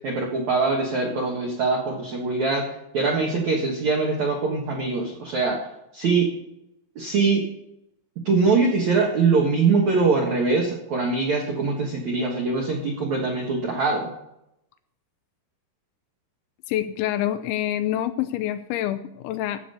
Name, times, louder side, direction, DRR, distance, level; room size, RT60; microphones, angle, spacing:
voice 1, 0.0-2.6 2.9-5.7 5.9-6.3 7.0-7.5 8.3-14.1, right 4 dB, 75° right, -1 dB, 1.7 m, -23 dB
voice 2, 16.7-19.6, left 12 dB, 85° left, 11 dB, 2.7 m, -26 dB
14.5 x 5.1 x 6.8 m, 0.83 s
omnidirectional pair, 5.5 m